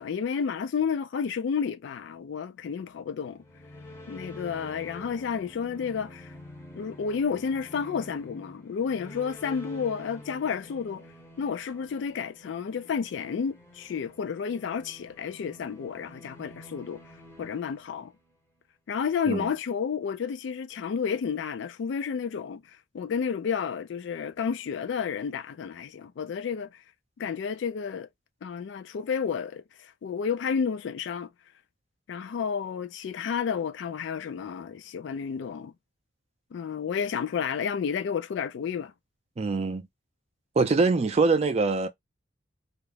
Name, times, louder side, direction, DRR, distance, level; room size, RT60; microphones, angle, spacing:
voice 1, 0.0-3.4 4.1-6.3 6.7-11.1 11.4-17.0 17.4-18.1 18.9-22.6 22.9-26.7 27.2-28.1 28.4-31.3 32.1-35.7 36.5-38.9, left 6 dB, 65° left, 0.3 m, -31 dB
sound 1, 3.3-18.4, left 1 dB, 15° left, 0.6 m, -48 dB
voice 2, 39.4-39.8 40.6-41.9, right 3 dB, 30° right, 0.3 m, -23 dB
2.4 x 2.1 x 3.0 m
head